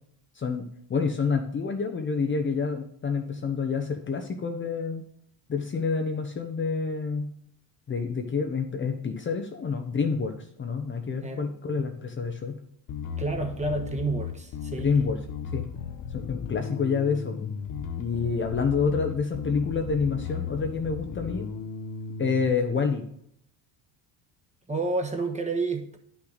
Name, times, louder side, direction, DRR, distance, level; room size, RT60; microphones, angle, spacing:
voice 1, 0.9-5.0 5.5-7.3 7.9-12.6 14.8-15.2 15.5-15.6 16.1-17.5 18.0-21.5 22.2-23.0, left 5 dB, 25° left, 5 dB, 0.9 m, -28 dB
Bass guitar, 12.9-22.5, left 6 dB, 45° left, 1.0 m, -36 dB
voice 2, 13.2-14.9 24.7-26.0, right 3 dB, 15° right, 3 dB, 1.3 m, -29 dB
9.9 x 6.0 x 4.0 m, 0.67 s
cardioid pair, 110°, 45 cm